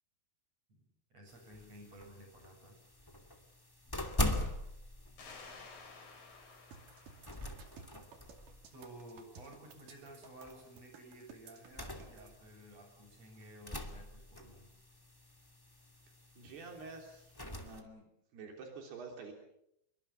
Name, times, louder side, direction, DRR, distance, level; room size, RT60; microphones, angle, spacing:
voice 1, 1.1-2.8 8.7-14.7, right 1 dB, 40° right, 4 dB, 8.6 m, -54 dB
Opening closing computer room door, 1.3-17.8, left 1 dB, 10° left, 1.7 m, -43 dB
sound 1, 5.2-8.6, left 4 dB, 55° left, 6.2 m, -55 dB
sound 2, 6.7-12.3, right 5 dB, 60° right, 3.9 m, -56 dB
voice 2, 16.4-17.3 17.6-18.1 18.3-19.3, right 4 dB, 80° right, 2 dB, 5.5 m, -48 dB
28.0 x 23.5 x 7.3 m, 0.78 s
omnidirectional pair, 4.6 m